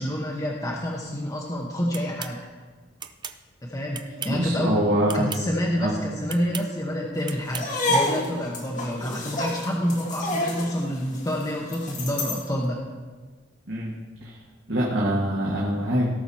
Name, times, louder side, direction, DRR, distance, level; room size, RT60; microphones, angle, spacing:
voice 1, 0.0-2.4 3.6-4.8 5.1-12.8, equal, 20° left, -2 dB, 1.0 m, -28 dB
sound 1, 1.9-2.4 3.0-3.4 3.9-4.4 5.1-5.4 6.3-6.7 7.3-7.7, right 7 dB, 25° right, 0.4 m, -36 dB
voice 2, 4.1-5.3 5.8-5.9 13.7-13.9 14.2-14.4 14.7-16.1, right 1 dB, 65° right, -5 dB, 1.8 m, -24 dB
sound 2, 5.0-11.5, equal, 45° right, 2.2 m, -46 dB
sound 3, 7.5-12.5, left 1 dB, 40° left, 1.6 m, -29 dB
18.0 x 6.0 x 4.2 m, 1.4 s
head